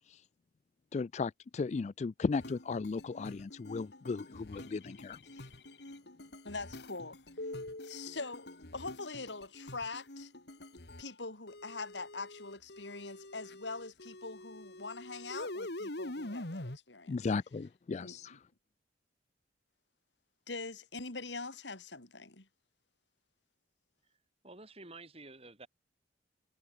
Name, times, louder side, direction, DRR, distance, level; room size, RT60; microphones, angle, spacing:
voice 1, 0.9-5.5 17.1-18.4, left 4 dB, 40° left, 0.3 m, -36 dB
sound 1, 2.4-11.1 11.5-16.8, left 1 dB, 65° left, 2.6 m, -46 dB
voice 2, 6.4-7.2 7.8-10.3 11.0-17.2 18.0-18.4 20.5-22.5, left 3 dB, 85° left, 3.7 m, -43 dB
voice 3, 24.4-25.7, right 2 dB, 35° right, 5.2 m, -51 dB
head